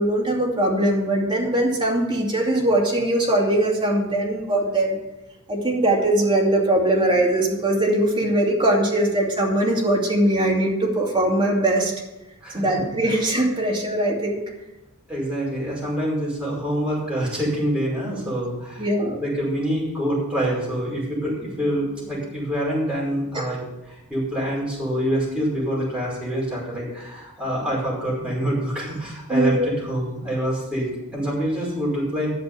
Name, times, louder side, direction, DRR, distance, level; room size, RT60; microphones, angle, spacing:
voice 1, 0.0-5.0 5.5-11.9 12.5-14.4 18.8-19.2 23.3-23.5 29.3-29.7, right 1 dB, 20° right, -2 dB, 2.6 m, -21 dB
voice 2, 12.4-12.8 15.1-18.9 19.2-23.6 23.9-30.9 31.1-32.3, equal, 5° right, -6 dB, 5.3 m, -26 dB
11.0 x 7.2 x 7.1 m, 0.96 s
head